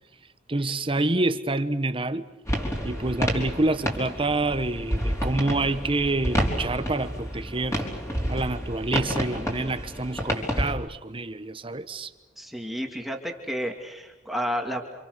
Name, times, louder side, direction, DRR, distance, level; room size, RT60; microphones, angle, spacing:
voice 1, 0.5-2.3 2.8-7.9 8.3-12.1, right 2 dB, 30° right, 1.2 m, -27 dB
sound 1, 2.5-10.7, equal, 15° left, 4.7 m, -29 dB
voice 2, 12.4-14.8, equal, ahead, 2.5 m, -31 dB
29.5 x 27.0 x 6.8 m
head